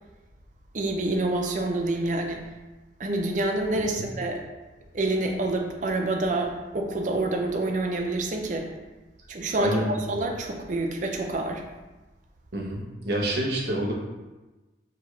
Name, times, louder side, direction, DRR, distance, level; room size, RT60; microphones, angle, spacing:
voice 1, 0.7-2.5 3.0-4.4 4.9-8.7 9.3-11.6, right 2 dB, 40° right, 2 dB, 0.5 m, -27 dB
voice 2, 3.7-4.1 9.6-10.2 12.5-13.9, right 1 dB, 60° right, -2 dB, 0.8 m, -28 dB
4.9 x 2.9 x 3.1 m, 1.1 s
head